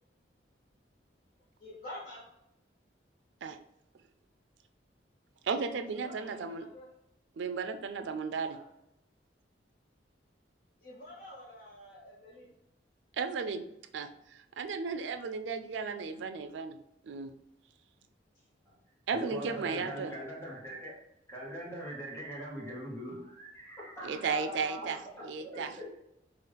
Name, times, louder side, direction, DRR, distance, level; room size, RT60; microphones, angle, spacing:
voice 1, 1.6-2.3 6.0-6.9 8.5-8.7 10.8-12.6 18.3-18.4 19.5-20.2, left 1 dB, 60° left, -5 dB, 0.9 m, -48 dB
voice 2, 5.4-6.7 7.4-8.6 13.2-13.6 13.9-16.8 17.0-17.3 19.1-20.1 24.0-25.7, right 5 dB, 85° right, 8 dB, 0.4 m, -35 dB
voice 3, 19.1-26.0, right 1 dB, 15° left, -5 dB, 1.0 m, -42 dB
4.9 x 2.5 x 3.3 m, 0.82 s
head